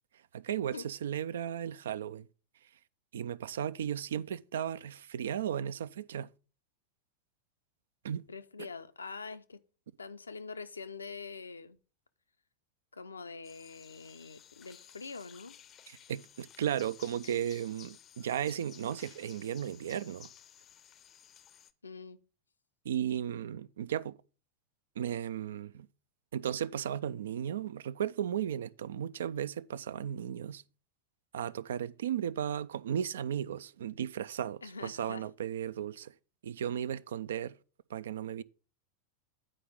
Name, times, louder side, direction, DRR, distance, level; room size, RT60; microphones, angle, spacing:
voice 1, 0.3-2.3 3.1-6.3 8.0-8.3 8.6-8.7 15.9-20.3 22.8-24.2 25.0-25.9 26.3-30.6 31.3-36.1 36.4-37.6 37.9-38.4, right 9 dB, 60° right, 0.3 m, -35 dB
voice 2, 8.3-9.6 10.0-11.8 12.9-15.6 21.8-22.2 34.6-35.2, left 4 dB, 75° left, 0.6 m, -44 dB
sound 1, 13.4-21.7, left 10 dB, 30° left, 0.6 m, -56 dB
9.9 x 5.0 x 5.2 m
figure-of-eight pair, 90°, 0 cm